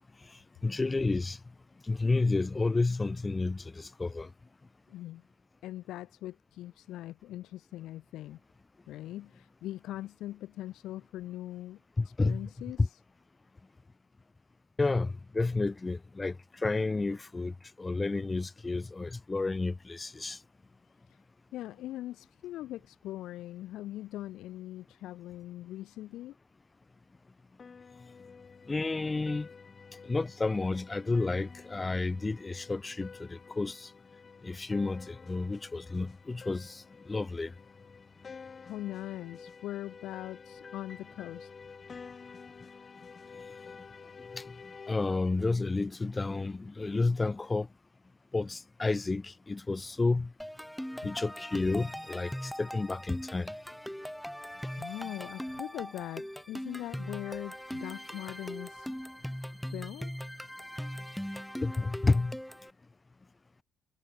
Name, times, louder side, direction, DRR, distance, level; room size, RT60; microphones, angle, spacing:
voice 1, 0.6-1.4 1.9-4.3 12.0-12.5 12.8-12.9 14.8-20.4 28.7-29.5 30.0-33.9 34.4-37.5 44.3-44.4 44.9-47.7 48.3-50.3 51.0-53.5 61.6-62.4, left 3 dB, 25° left, 4.7 m, -31 dB
voice 2, 4.9-5.2 5.6-8.4 8.9-11.8 12.2-13.0 21.1-21.2 21.5-26.3 38.6-41.5 51.0-51.1 54.8-59.0 59.7-60.1, left 14 dB, 85° left, 1.3 m, -41 dB
sound 1, 27.6-44.9, left 5 dB, 40° left, 6.5 m, -50 dB
sound 2, 50.4-62.7, equal, ahead, 1.0 m, -40 dB
cardioid pair, 90°, 0 cm